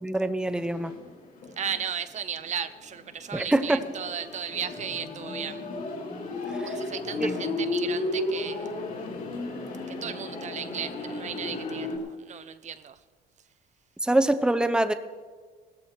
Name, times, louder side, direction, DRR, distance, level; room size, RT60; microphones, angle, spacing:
voice 1, 0.0-0.9 3.3-3.8 6.5-6.7 7.2-7.3 14.0-14.9, right 1 dB, 5° right, 10 dB, 0.8 m, -24 dB
sound 1, 0.5-1.9 2.2-2.3 3.0-12.0, left 2 dB, 50° left, 3.8 m, -33 dB
voice 2, 1.6-5.6 6.6-8.9 9.9-13.0, right 7 dB, 45° right, 12 dB, 0.7 m, -35 dB
17.0 x 14.0 x 4.6 m, 1.5 s
cardioid pair, 110°, 17 cm